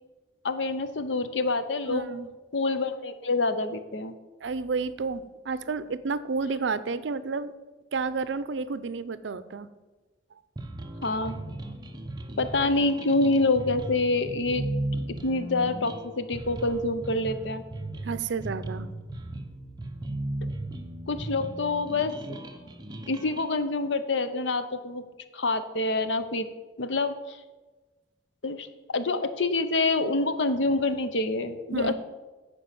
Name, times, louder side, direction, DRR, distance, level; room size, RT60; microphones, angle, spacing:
voice 1, 0.4-2.1 2.5-4.1 11.0-11.4 12.4-14.7 15.2-17.6 21.1-22.1 23.1-25.0 25.3-26.5 26.8-27.4 28.4-31.9, left 3 dB, 80° left, 10 dB, 0.8 m, -26 dB
voice 2, 1.9-2.3 4.4-7.5 7.9-9.7 18.0-18.9 31.7-31.9, right 4 dB, 80° right, 15 dB, 0.5 m, -31 dB
sound 1, 10.6-23.5, right 1 dB, 25° right, 0.8 m, -36 dB
9.9 x 4.6 x 7.7 m, 1.2 s
head